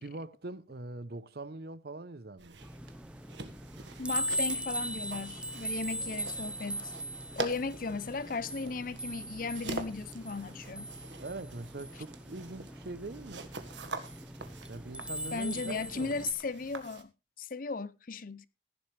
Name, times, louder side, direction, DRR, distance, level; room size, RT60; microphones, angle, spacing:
voice 1, 0.0-2.7 11.2-13.5 14.7-16.3, right 2 dB, 55° right, 0.8 m, -43 dB
sound 1, 2.4-17.0, right 3 dB, 85° right, 1.6 m, -45 dB
sound 2, 2.6-16.3, right 1 dB, 5° right, 0.6 m, -40 dB
voice 2, 4.0-6.9 7.4-10.9 15.3-17.1 17.4-18.5, left 4 dB, 50° left, 0.6 m, -36 dB
15.5 x 11.0 x 3.3 m
head